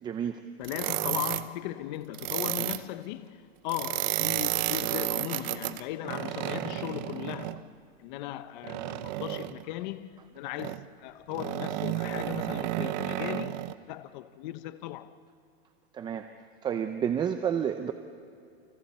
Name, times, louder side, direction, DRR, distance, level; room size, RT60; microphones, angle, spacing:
voice 1, 0.0-0.4 12.8-12.9 15.9-16.3 16.6-17.9, right 8 dB, 15° right, 0.5 m, -30 dB
voice 2, 0.6-15.2, left 14 dB, 45° left, 0.9 m, -38 dB
sound 1, 0.6-1.5 2.1-2.8 3.7-7.6 8.6-9.6 10.6-10.9 11.3-13.7, right 16 dB, 45° right, 0.8 m, -32 dB
29.0 x 27.5 x 4.3 m
supercardioid pair, 150°, 32 cm